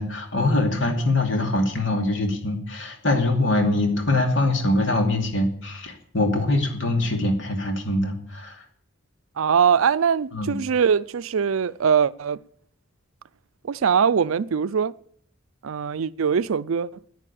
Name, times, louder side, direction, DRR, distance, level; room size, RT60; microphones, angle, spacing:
voice 1, 0.0-8.6 10.3-10.5, left 2 dB, 65° left, 2.7 m, -23 dB
voice 2, 9.4-12.4 13.6-14.9 15.6-16.9, right 7 dB, 85° right, 0.5 m, -22 dB
9.9 x 9.7 x 8.6 m
head